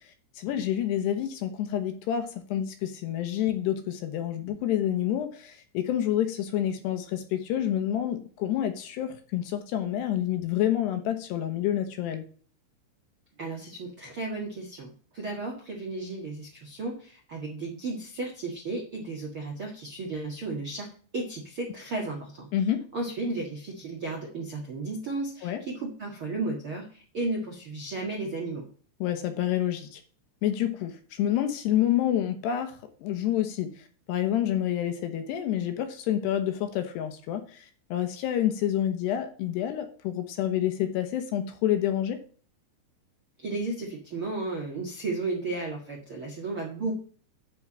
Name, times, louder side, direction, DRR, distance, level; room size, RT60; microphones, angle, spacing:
voice 1, 0.4-12.2 22.5-22.8 25.4-25.6 29.0-30.0 30.4-32.7 33.0-33.7 34.1-37.7 37.9-42.2, left 11 dB, 75° left, 8 dB, 2.7 m, -28 dB
voice 2, 13.4-22.5 22.9-28.7 43.4-46.9, right 3 dB, 65° right, -2 dB, 1.3 m, -34 dB
10.5 x 4.7 x 7.3 m, 0.42 s
omnidirectional pair, 5.7 m